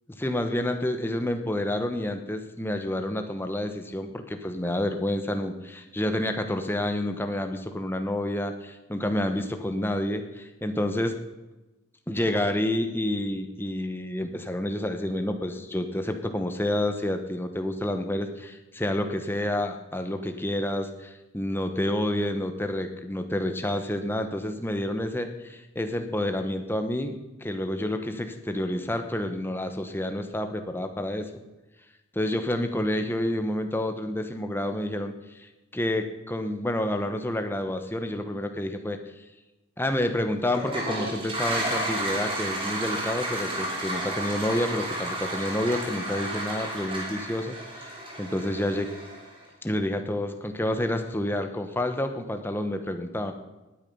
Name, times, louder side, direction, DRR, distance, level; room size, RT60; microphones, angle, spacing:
voice 1, 0.2-11.2 12.1-31.3 32.1-39.0 39.8-47.9 48.2-48.9 49.6-53.3, left 1 dB, 10° left, 7 dB, 0.9 m, -29 dB
Toilet flush, 40.5-49.4, right 1 dB, 25° right, 3.0 m, -32 dB
19.0 x 9.2 x 5.5 m, 1.1 s
head